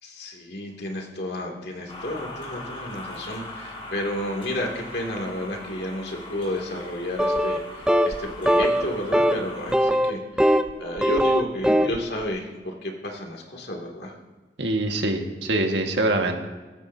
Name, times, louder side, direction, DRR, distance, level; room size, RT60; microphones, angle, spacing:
voice 1, 0.0-14.1, left 1 dB, 65° left, 0 dB, 2.5 m, -31 dB
sound 1, 1.9-9.7, left 2 dB, 35° left, 2.8 m, -40 dB
sound 2, 7.2-7.6 7.9-8.2 8.5-8.8 9.1-9.4 9.7-10.7 11.0-12.0, equal, 5° right, 0.5 m, -20 dB
voice 2, 14.6-16.4, right 2 dB, 85° right, 3 dB, 1.7 m, -24 dB
22.5 x 13.5 x 2.8 m, 1.3 s
head